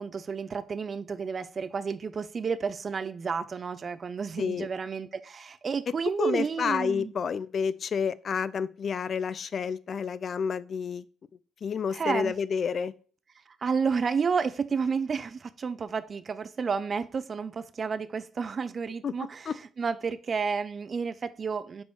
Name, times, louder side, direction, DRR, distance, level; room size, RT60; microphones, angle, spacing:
voice 1, 0.0-7.1 11.9-12.3 13.6-21.8, right 5 dB, 40° right, 0.5 m, -31 dB
voice 2, 4.4-4.7 6.2-11.0 11.6-12.9 19.0-19.1 19.5-19.6, left 6 dB, 50° left, 0.4 m, -29 dB
5.3 x 4.5 x 4.7 m
cardioid pair, 90°, 0 cm